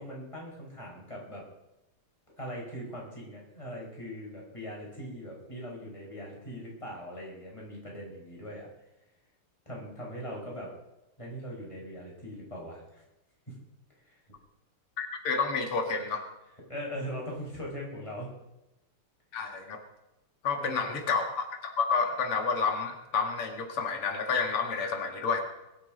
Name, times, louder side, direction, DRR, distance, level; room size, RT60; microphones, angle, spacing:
voice 1, 0.0-1.4 2.4-8.7 9.7-10.7 11.2-13.0 13.5-13.6 14.0-14.2 16.7-18.3 20.6-21.1, equal, 15° left, -3 dB, 5.3 m, -40 dB
voice 2, 15.0-16.2 19.3-19.8 20.4-21.5 21.8-25.4, left 5 dB, 90° left, 4 dB, 2.7 m, -29 dB
21.5 x 10.5 x 5.2 m, 0.95 s
omnidirectional pair, 2.4 m